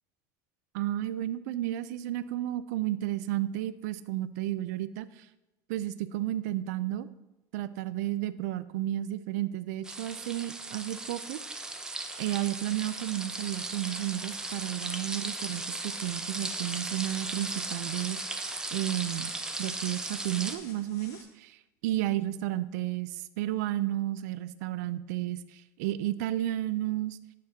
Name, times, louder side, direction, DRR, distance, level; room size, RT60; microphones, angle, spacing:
voice 1, 0.7-5.3 5.7-7.1 7.5-11.4 12.2-18.2 18.7-21.6 21.8-27.2, right 14 dB, 85° right, 15 dB, 0.4 m, -32 dB
sound 1, 9.8-20.6, right 2 dB, 10° right, 0.4 m, -37 dB
sound 2, 13.1-21.2, left 4 dB, 35° left, 1.3 m, -52 dB
9.2 x 6.4 x 2.8 m, 0.98 s
cardioid pair, 160°, 9 cm